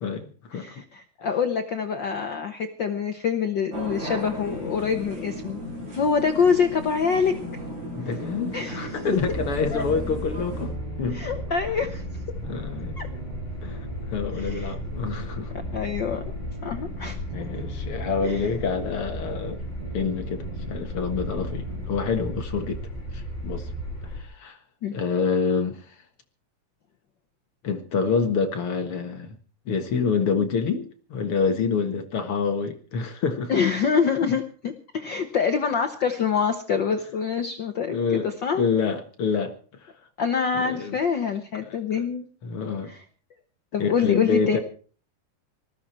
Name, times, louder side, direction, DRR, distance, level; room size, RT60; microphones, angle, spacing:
voice 1, 0.0-0.8 7.9-11.3 12.5-13.0 13.6-15.6 17.3-19.6 19.9-22.8 23.1-23.7 24.0-24.6 24.9-26.0 27.6-29.4 29.7-33.5 37.9-38.3 38.6-39.9 40.5-41.0 41.5-41.8 42.4-42.9 43.8-44.6, left 5 dB, 50° left, 2.1 m, -27 dB
voice 2, 0.5-5.6 5.9-7.4 8.5-8.9 9.7-9.8 11.1-12.0 13.0-13.1 14.4-14.7 15.7-16.3 16.6-17.2 18.2-18.4 24.8-25.0 33.5-38.6 40.2-42.2 42.8-43.0 43.7-44.6, left 6 dB, 80° left, 1.0 m, -25 dB
sound 1, 3.7-10.7, equal, 60° right, 8.6 m, -36 dB
sound 2, 7.1-21.8, right 3 dB, 40° right, 8.4 m, -41 dB
train compartment, 9.2-24.2, left 1 dB, 20° left, 4.2 m, -35 dB
20.0 x 14.5 x 4.4 m
omnidirectional pair, 3.8 m